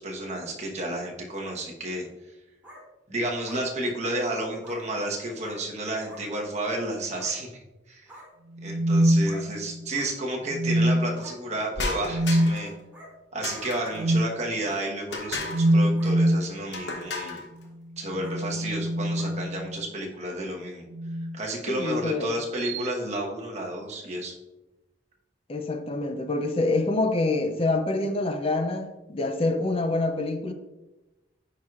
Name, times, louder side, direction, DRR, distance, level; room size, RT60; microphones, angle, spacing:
voice 1, 0.0-2.1 3.1-7.6 7.9-8.1 8.6-12.7 13.3-17.4 18.0-20.9 21.3-24.3, right 1 dB, 40° right, 1.1 m, -31 dB
sound 1, 2.6-2.8 3.4-3.6 4.6-4.8 5.4-5.6 6.1-6.2 7.1-7.3 8.0-8.3 9.2-9.4 9.9-10.1 11.1-11.3 12.2-12.3 12.9-13.1 13.7-13.8 14.6-14.8 15.3-15.5 16.0-16.1 16.8-17.0 17.5-17.7 18.2-18.4 19.1-19.3, equal, 10° right, 2.1 m, -46 dB
sound 2, 8.6-9.9 10.5-11.3 12.1-12.6 14.0-14.3 15.5-16.5 18.0-19.8 20.9-21.4 22.6-22.9, right 1 dB, 90° right, 0.4 m, -24 dB
sound 3, 11.7-12.7 13.4-14.1 15.1-15.7 16.7-17.5, left 3 dB, 75° left, 0.9 m, -33 dB
voice 2, 21.7-22.3 25.5-30.5, left 2 dB, 30° left, 0.5 m, -26 dB
9.9 x 4.7 x 2.4 m
head